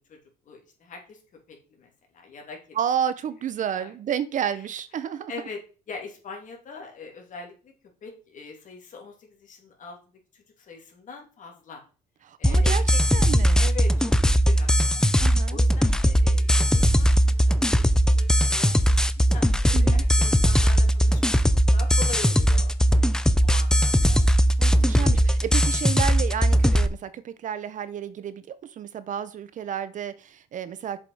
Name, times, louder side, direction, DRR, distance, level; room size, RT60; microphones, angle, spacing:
voice 1, 0.4-1.2 1.5-2.8 3.7-3.9 4.5-4.7 5.3-5.6 5.9-7.7 8.0-11.8 12.4-12.9 13.6-15.0 15.5-21.4 21.7-24.2 24.8-25.4, left 5 dB, 50° left, 2.8 m, -42 dB
voice 2, 2.8-5.3 12.2-13.6 15.2-15.6 19.7-20.0 24.6-31.0, right 9 dB, 50° right, 0.7 m, -31 dB
sound 1, 12.4-26.9, equal, 5° left, 0.5 m, -20 dB
7.1 x 5.1 x 4.8 m
cardioid pair, 110°, 17 cm